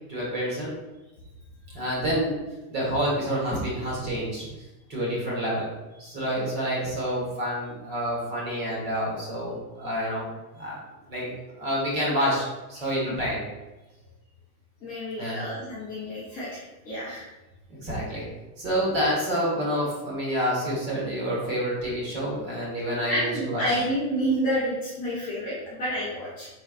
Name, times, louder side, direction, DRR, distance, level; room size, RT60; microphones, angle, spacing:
voice 1, 0.1-0.7 1.7-2.3 2.7-4.5 4.9-5.7 6.0-10.7 11.1-11.3 11.6-12.4 12.7-13.4 15.2-15.4 17.8-18.2 18.6-23.8, equal, 25° right, -5 dB, 1.3 m, -28 dB
voice 2, 14.8-17.3 23.1-26.5, equal, 20° left, -9 dB, 0.7 m, -29 dB
4.7 x 3.2 x 2.5 m, 1.1 s
supercardioid pair, 170°, 44 cm